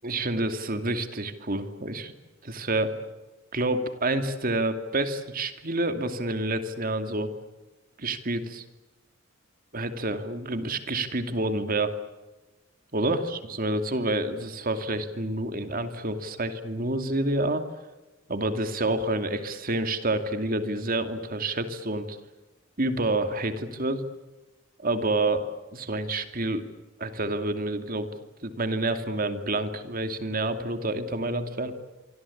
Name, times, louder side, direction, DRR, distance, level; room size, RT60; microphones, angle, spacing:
voice 1, 0.0-2.1 2.4-2.9 3.5-7.3 8.0-8.6 9.7-11.9 12.9-17.6 18.3-22.2 22.8-24.0 24.8-25.4 25.7-26.7 27.0-28.1 28.4-31.7, right 2 dB, 45° right, 8 dB, 2.5 m, -28 dB
26.0 x 25.0 x 8.6 m, 1.1 s
head